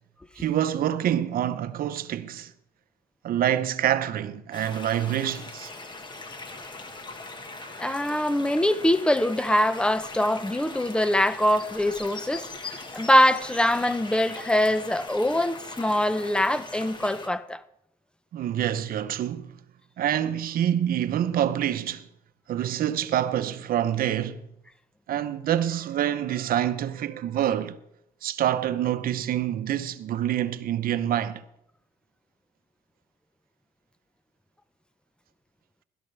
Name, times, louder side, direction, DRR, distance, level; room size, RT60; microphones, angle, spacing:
voice 1, 0.4-2.5 3.2-5.7 18.3-19.5 20.0-22.1 22.5-24.4 25.1-27.8 28.2-31.4, right 11 dB, 60° right, 0.9 m, -26 dB
sound 1, 4.5-17.3, left 3 dB, 25° left, 1.5 m, -40 dB
voice 2, 7.8-17.6, left 1 dB, 5° left, 0.6 m, -23 dB
17.0 x 12.5 x 3.4 m
cardioid pair, 110°, 17 cm